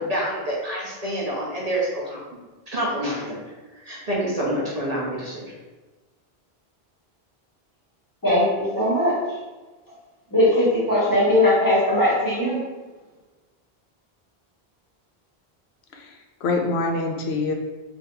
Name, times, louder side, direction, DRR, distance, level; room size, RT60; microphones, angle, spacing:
voice 1, 0.0-2.2 2.7-3.4 3.7-5.5, equal, 40° right, -5 dB, 0.8 m, -27 dB
voice 2, 8.2-9.2 10.3-12.6, left 1 dB, 20° left, -8 dB, 1.4 m, -19 dB
voice 3, 15.9-17.5, left 3 dB, 90° left, 2 dB, 0.9 m, -25 dB
3.7 x 3.5 x 2.8 m, 1.2 s
omnidirectional pair, 1.0 m